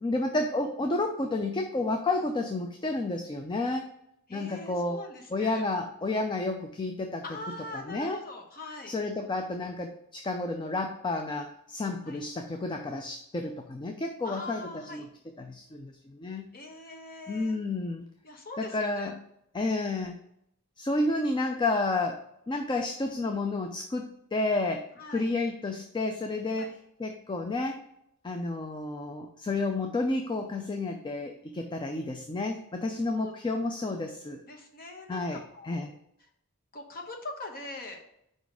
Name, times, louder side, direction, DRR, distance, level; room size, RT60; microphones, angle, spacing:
voice 1, 0.0-3.9 4.3-5.0 5.3-7.2 7.9-8.2 8.9-15.1 15.4-16.5 17.3-18.1 18.6-19.1 19.5-20.2 20.8-27.8 28.2-34.4 35.1-35.4 35.7-35.9, left 2 dB, 20° left, 4 dB, 0.4 m, -31 dB
voice 2, 4.3-5.7 7.2-9.0 12.1-12.2 14.2-15.1 16.5-17.6 18.2-19.1 25.0-25.3 26.6-26.8 32.9-33.3 34.5-35.8 36.2-36.3 36.7-38.0, left 2 dB, 45° left, 2 dB, 1.1 m, -42 dB
5.0 x 4.0 x 4.7 m, 0.77 s
head